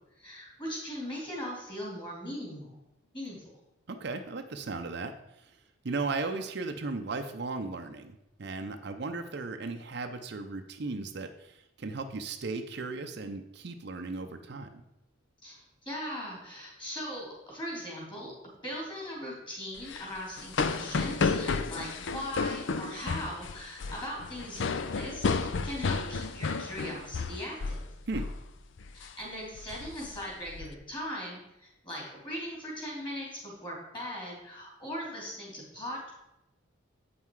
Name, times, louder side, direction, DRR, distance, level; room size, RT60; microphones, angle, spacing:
voice 1, 0.2-2.8 3.1-3.6 15.4-18.3 18.6-27.9 28.9-36.1, equal, 25° left, -3 dB, 3.1 m, -39 dB
voice 2, 3.9-5.5 5.8-14.8 28.1-28.3, right 3 dB, 55° right, 6 dB, 0.6 m, -36 dB
sound 1, 19.8-27.9 28.1-28.4 28.8-29.1 29.6-30.7, left 4 dB, 65° left, 0.5 m, -32 dB
8.5 x 5.6 x 4.7 m, 0.89 s
head